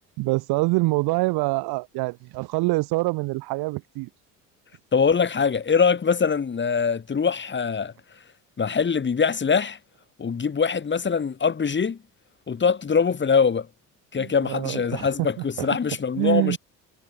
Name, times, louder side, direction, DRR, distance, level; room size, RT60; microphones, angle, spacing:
voice 1, 0.2-4.1 14.2-15.8 16.2-16.6, right 22 dB, 65° right, 2.1 m, -25 dB
voice 2, 4.9-7.9 8.6-9.8 10.2-12.0 12.5-13.7 14.1-16.6, left 6 dB, 30° left, 1.7 m, -23 dB
hypercardioid pair, 60°, 40 cm